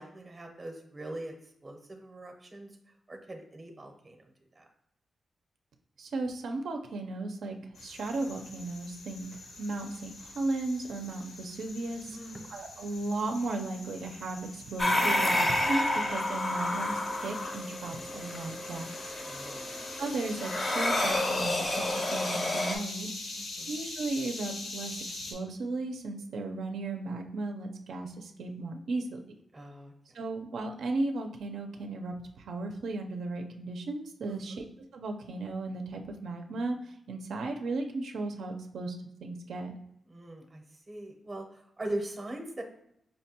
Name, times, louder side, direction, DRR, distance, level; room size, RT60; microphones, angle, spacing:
voice 1, 0.0-1.3 1.6-2.7 3.1-4.2 4.6-4.7 12.1-12.5 19.3-19.7 23.3-23.8 29.5-29.9 34.3-34.6 40.1-42.6, right 1 dB, 25° right, 3 dB, 0.6 m, -41 dB
voice 2, 6.0-12.2 12.5-19.1 20.0-23.1 23.7-29.2 30.1-34.6 34.9-39.8, right 2 dB, 90° right, 4 dB, 0.4 m, -35 dB
sound 1, 7.7-25.3, left 2 dB, 90° left, 0.8 m, -43 dB
sound 2, 14.8-22.8, left 1 dB, 25° left, 0.4 m, -30 dB
5.2 x 2.2 x 2.8 m, 0.76 s
wide cardioid pair, 165°, 0 cm